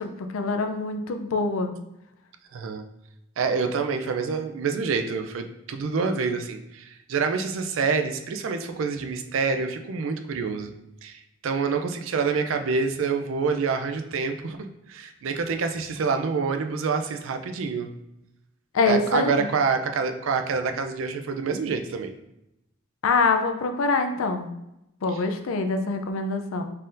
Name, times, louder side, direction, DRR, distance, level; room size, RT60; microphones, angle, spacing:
voice 1, 0.0-1.7 18.7-19.5 23.0-24.5 25.0-26.6, left 3 dB, 85° left, 6 dB, 0.5 m, -25 dB
voice 2, 2.5-2.8 3.4-10.7 11.0-14.6 14.9-17.9 18.9-22.1, right 5 dB, 70° right, 6 dB, 0.4 m, -27 dB
4.2 x 3.7 x 2.5 m, 0.86 s
head